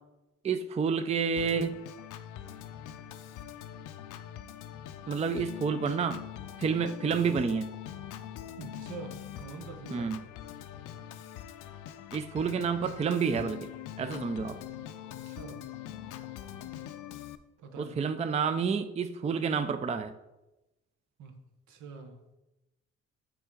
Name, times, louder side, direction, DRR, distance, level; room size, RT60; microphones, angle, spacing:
voice 1, 0.4-1.8 5.1-6.2 6.6-7.7 9.9-10.3 12.1-13.7 14.0-14.6 17.8-20.1, right 6 dB, 20° right, 0.4 m, -29 dB
Organ, 1.4-17.4, left 10 dB, 90° left, 0.5 m, -43 dB
voice 2, 8.6-10.1 15.2-15.7 17.6-17.9 21.2-22.2, right 4 dB, 75° right, 1.0 m, -45 dB
6.9 x 4.6 x 3.7 m
cardioid pair, 90°, 30 cm